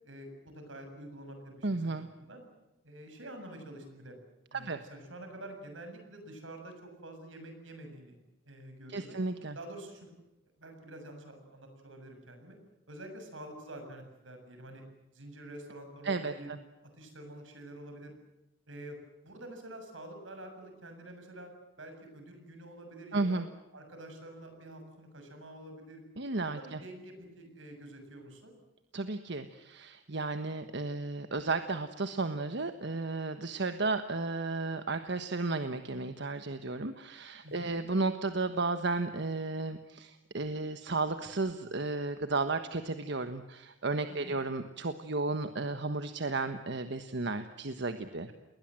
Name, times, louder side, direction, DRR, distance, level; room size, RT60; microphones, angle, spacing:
voice 1, 0.0-2.4 2.8-4.2 4.5-8.2 8.5-9.2 9.5-10.1 10.6-12.6 12.9-14.8 15.1-16.5 16.8-18.1 18.7-19.0 19.2-21.5 21.8-23.4 23.7-26.0 26.4-28.6 37.4-37.7 44.1-44.4, right 1 dB, 85° right, 5 dB, 7.3 m, -47 dB
voice 2, 1.6-2.1 4.5-4.8 8.9-9.6 16.0-16.6 23.1-23.5 26.2-26.8 28.9-48.3, right 3 dB, 65° right, 9 dB, 1.3 m, -33 dB
30.0 x 21.0 x 7.7 m, 0.96 s
head